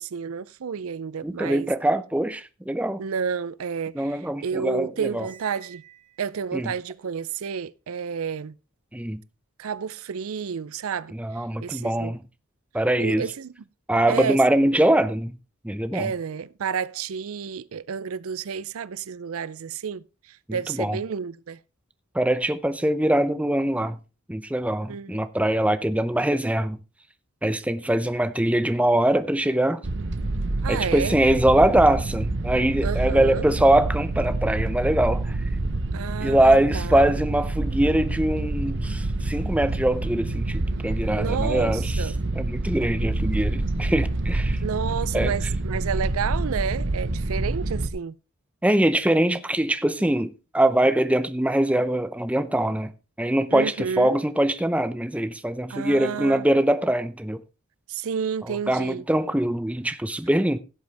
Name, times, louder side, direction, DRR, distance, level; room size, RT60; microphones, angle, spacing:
voice 1, 0.0-1.7 3.0-5.8 6.2-8.5 9.6-11.1 11.6-12.2 13.0-13.5 14.1-14.4 15.9-21.6 24.9-25.2 30.6-31.2 32.8-33.4 35.9-37.0 41.2-42.2 44.6-48.2 53.5-54.2 55.7-56.4 57.9-59.0, right 6 dB, 75° right, 0.5 m, -30 dB
voice 2, 1.2-3.0 3.9-5.3 6.5-6.7 8.9-9.2 11.1-12.2 12.7-13.3 13.9-15.3 15.6-16.1 20.5-21.0 22.1-24.0 24.3-26.8 27.4-29.8 30.7-35.4 36.2-42.0 42.3-44.6 45.1-45.3 48.6-52.9 53.2-57.4 58.5-60.6, right 1 dB, 5° right, 0.6 m, -23 dB
Cymbal, 5.1-6.6, right 11 dB, 20° right, 1.7 m, -48 dB
sound 1, 29.8-47.9, right 2 dB, 55° right, 1.0 m, -27 dB
sound 2, 35.5-42.0, equal, 60° left, 5.6 m, -44 dB
16.5 x 7.9 x 3.4 m
head